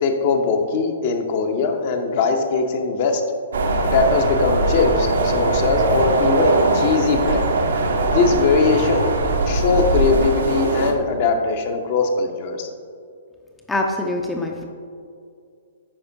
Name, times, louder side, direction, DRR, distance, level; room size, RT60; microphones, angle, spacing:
voice 1, 0.0-3.2 3.9-7.5 8.1-9.2 9.4-12.7, left 4 dB, 45° left, 5 dB, 0.7 m, -20 dB
sound 1, 3.5-10.9, right 2 dB, 65° right, 0.7 m, -20 dB
voice 2, 13.7-14.7, left 2 dB, 10° left, 1 dB, 0.4 m, -24 dB
8.6 x 5.0 x 2.7 m, 2.3 s
figure-of-eight pair, 115°, 0 cm